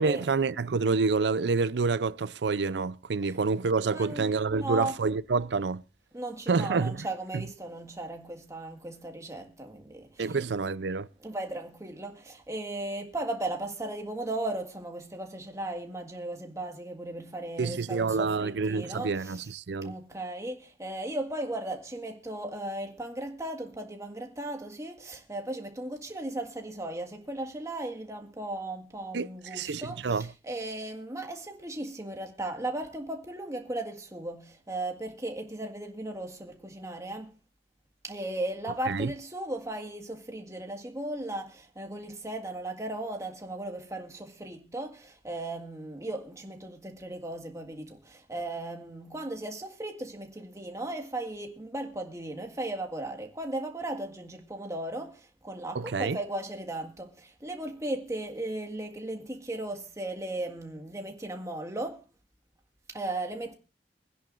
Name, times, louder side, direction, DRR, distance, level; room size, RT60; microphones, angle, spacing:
voice 1, 0.0-5.8 6.5-7.1 7.3-7.4 10.2-11.1 17.6-19.9 29.1-30.3 38.9-39.1 55.7-56.2, right 4 dB, 75° right, 0.5 m, -28 dB
voice 2, 3.8-4.2 4.5-5.0 6.1-10.4 11.2-19.5 19.8-37.3 38.0-62.0 62.9-63.5, right 1 dB, 20° right, 1.8 m, -36 dB
24.5 x 10.5 x 2.5 m
head